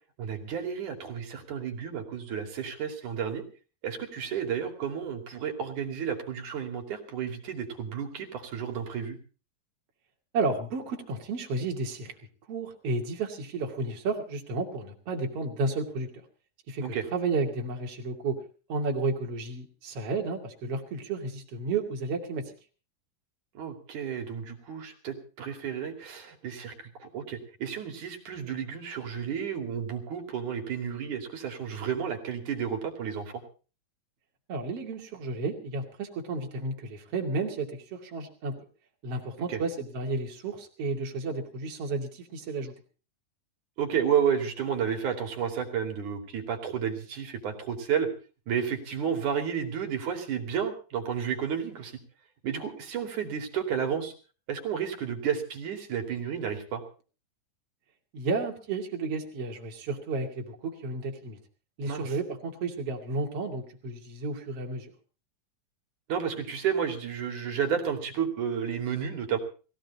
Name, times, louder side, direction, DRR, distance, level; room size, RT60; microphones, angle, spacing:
voice 1, 0.2-3.4 3.8-9.2 16.8-17.1 23.6-33.3 39.4-39.6 43.8-48.1 48.5-51.9 52.4-54.1 54.5-56.8 61.9-62.1 66.1-69.4, right 8 dB, 60° right, 4 dB, 3.9 m, -31 dB
voice 2, 10.3-12.1 12.5-16.1 16.7-18.4 18.7-22.5 34.5-38.6 39.0-42.7 58.1-61.4 61.8-64.9, right 3 dB, 45° right, 2 dB, 3.3 m, -32 dB
19.5 x 16.5 x 4.1 m, 0.37 s
omnidirectional pair, 4.1 m